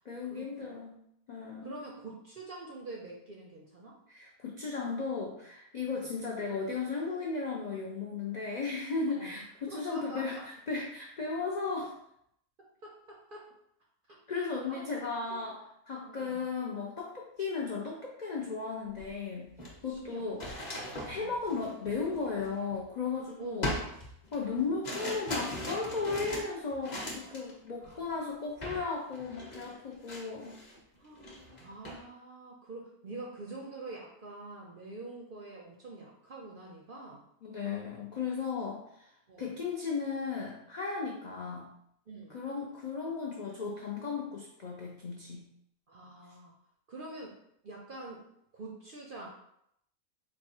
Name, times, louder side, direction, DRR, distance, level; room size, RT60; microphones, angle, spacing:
voice 1, 0.0-1.0 1.3-1.8 4.1-11.9 14.3-19.5 19.8-20.4 21.0-23.7 24.3-30.6 37.4-39.1 39.4-41.7 42.3-45.5, left 4 dB, 70° left, -2 dB, 0.4 m, -35 dB
voice 2, 1.6-4.0 6.0-6.1 9.1-9.4 9.7-10.4 12.6-13.5 14.1-15.4 16.1-16.5 19.9-20.3 21.1-21.4 23.4-23.7 27.0-27.4 27.8-28.1 30.9-31.3 31.6-37.3 38.6-38.7 39.3-39.5 42.1-42.4 45.9-46.5 46.9-47.3 47.6-48.2 48.5-49.3, right 2 dB, 55° right, -1 dB, 0.6 m, -46 dB
sound 1, 19.0-19.1 19.5-23.1 23.6-27.5 27.8-28.1 28.6-28.9 29.1-30.8 31.1-32.0, left 1 dB, 35° left, 0.9 m, -39 dB
4.3 x 2.2 x 4.3 m, 0.73 s
omnidirectional pair, 1.5 m